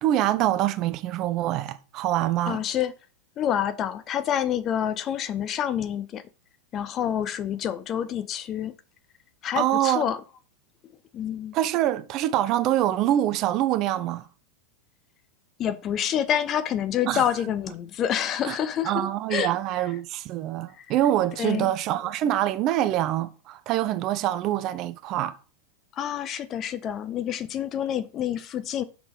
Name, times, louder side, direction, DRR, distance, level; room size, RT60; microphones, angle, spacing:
voice 1, 0.0-2.6 9.6-10.1 11.5-14.3 17.1-17.3 18.5-18.6 18.8-25.3, right 13 dB, 40° right, 0.7 m, -25 dB
voice 2, 2.5-2.9 3.4-6.2 6.7-8.7 9.4-10.2 11.1-11.5 15.6-19.5 20.8-20.9 21.4-21.7 25.9-28.8, left 9 dB, 30° left, 0.6 m, -27 dB
5.8 x 5.8 x 3.9 m
figure-of-eight pair, 90°, 0 cm